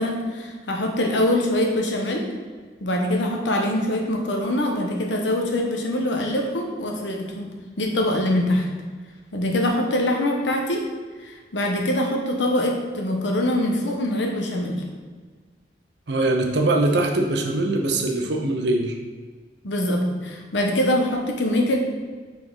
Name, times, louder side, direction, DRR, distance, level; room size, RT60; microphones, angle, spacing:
voice 1, 0.0-2.3 2.8-8.7 9.3-10.8 11.2-14.8 19.6-21.8, left 1 dB, 90° left, 2 dB, 1.0 m, -23 dB
voice 2, 16.1-19.0, right 2 dB, 70° right, 3 dB, 0.7 m, -22 dB
5.9 x 4.3 x 3.9 m, 1.5 s
head